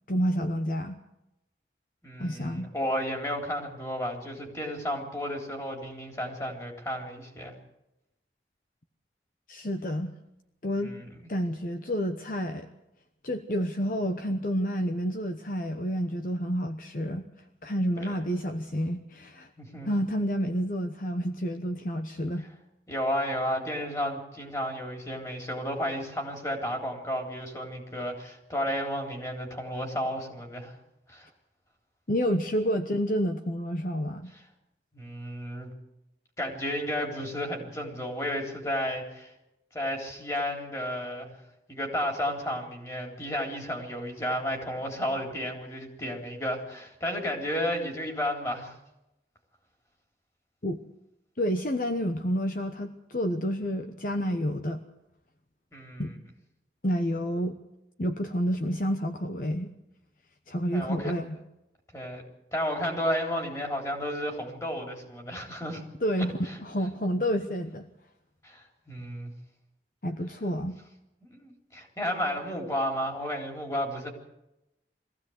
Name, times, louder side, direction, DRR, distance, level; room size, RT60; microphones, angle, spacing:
voice 1, 0.1-1.0 2.2-2.7 9.5-10.1 10.6-10.9 11.3-12.7 13.2-17.2 17.6-19.5 19.8-22.5 32.1-34.3 50.6-50.8 51.4-54.8 56.0-56.1 56.8-57.6 58.0-59.7 60.5-61.4 66.0-67.9 70.0-70.8, equal, 50° left, 7 dB, 1.0 m, -29 dB
voice 2, 2.0-7.5 10.8-11.0 18.0-18.2 19.6-19.9 22.9-30.7 31.1-31.3 34.9-35.7 36.4-39.3 39.7-41.3 41.7-48.7 55.7-56.1 60.7-61.1 61.9-62.2 62.5-65.8 66.4-66.6 68.4-69.3 71.2-74.1, equal, 20° left, 2 dB, 3.7 m, -32 dB
22.5 x 15.5 x 8.0 m, 0.90 s
head